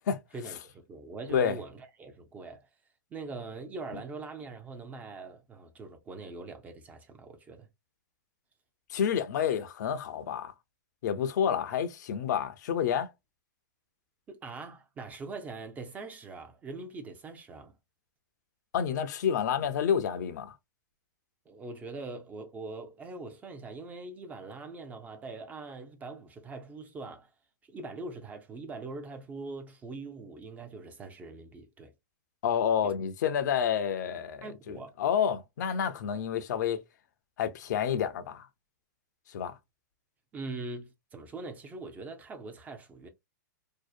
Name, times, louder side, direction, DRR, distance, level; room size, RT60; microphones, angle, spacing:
voice 1, 0.3-2.6 3.1-7.7 14.3-17.7 21.5-27.3 27.6-31.9 32.8-32.9 34.4-34.9 40.3-43.1, right 3 dB, 15° right, 0.4 m, -42 dB
voice 2, 8.9-10.5 11.0-13.1 18.7-20.5 32.4-36.8 37.4-38.5 39.3-39.6, left 8 dB, 65° left, 0.5 m, -29 dB
2.7 x 2.0 x 2.4 m
hypercardioid pair, 145°, 10 cm